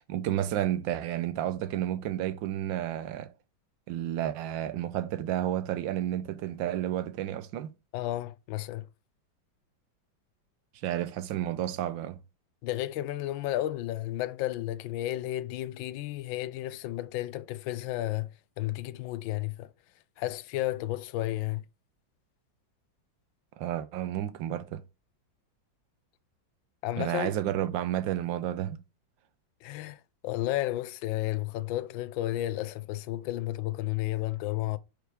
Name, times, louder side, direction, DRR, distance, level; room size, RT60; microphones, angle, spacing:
voice 1, 0.0-3.3 3.9-7.7 10.8-12.2 23.6-24.8 27.0-28.8, right 12 dB, 80° right, 1.4 m, -31 dB
voice 2, 7.9-8.9 12.6-18.3 18.6-19.7 20.2-21.6 26.8-27.3 29.6-34.8, left 15 dB, 80° left, 1.3 m, -32 dB
5.0 x 4.6 x 4.8 m
omnidirectional pair, 2.1 m